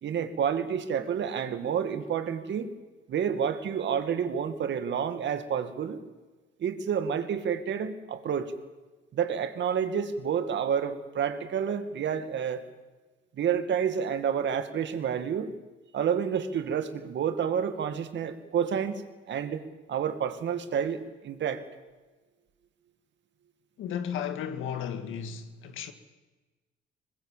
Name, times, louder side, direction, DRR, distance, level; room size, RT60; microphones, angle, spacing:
voice 1, 0.0-2.7 3.1-6.0 6.6-8.5 9.1-12.7 13.3-15.5 15.9-19.6 19.9-21.6, right 7 dB, 65° right, 2.1 m, -29 dB
voice 2, 23.8-25.9, left 8 dB, 85° left, 1.9 m, -34 dB
23.0 x 21.0 x 7.4 m
cardioid pair, 90°, 20 cm